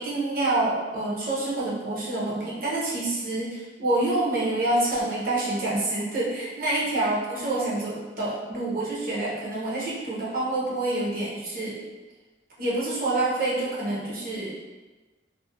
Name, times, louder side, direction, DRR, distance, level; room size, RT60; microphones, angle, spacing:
voice 1, 0.0-11.8 12.6-14.6, right 2 dB, 50° right, -6 dB, 0.6 m, -27 dB
2.4 x 2.1 x 2.5 m, 1.2 s
head